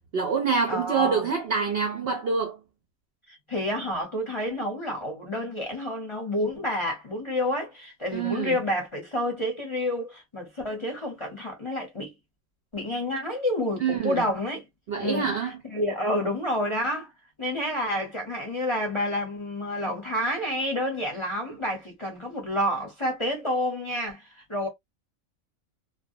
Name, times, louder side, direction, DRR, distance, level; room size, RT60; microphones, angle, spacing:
voice 1, 0.1-2.6 8.1-8.6 13.8-14.2 14.9-15.6, right 5 dB, 65° right, 0.6 m, -26 dB
voice 2, 0.7-1.3 3.3-12.1 12.7-14.6 15.0-15.3 15.6-17.1 17.4-24.7, left 1 dB, 30° left, 0.7 m, -29 dB
2.4 x 2.1 x 2.6 m
omnidirectional pair, 1.5 m